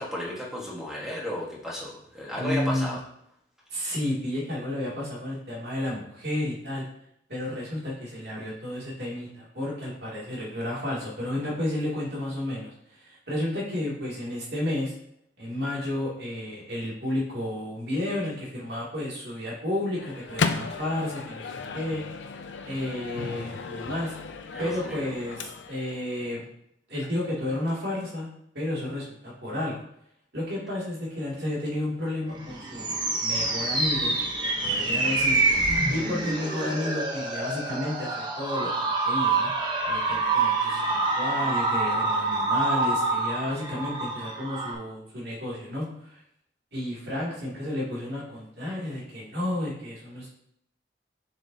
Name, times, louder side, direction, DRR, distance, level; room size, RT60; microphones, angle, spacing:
voice 1, 0.0-3.0 24.5-25.1, left 1 dB, ahead, -5 dB, 1.4 m, -34 dB
voice 2, 2.3-3.0 3.7-6.8 7.3-14.9 15.4-22.0 22.6-24.1 24.6-26.5 26.9-28.3 28.5-29.8 30.3-34.2 34.6-35.4 35.9-39.5 39.9-46.2 46.7-50.3, left 1 dB, 65° right, -6 dB, 2.6 m, -32 dB
Microwave oven, 19.9-25.9, left 4 dB, 85° left, 0.6 m, -34 dB
sound 1, 32.4-44.7, right 3 dB, 25° right, 0.9 m, -26 dB
7.2 x 5.6 x 2.8 m, 0.72 s
head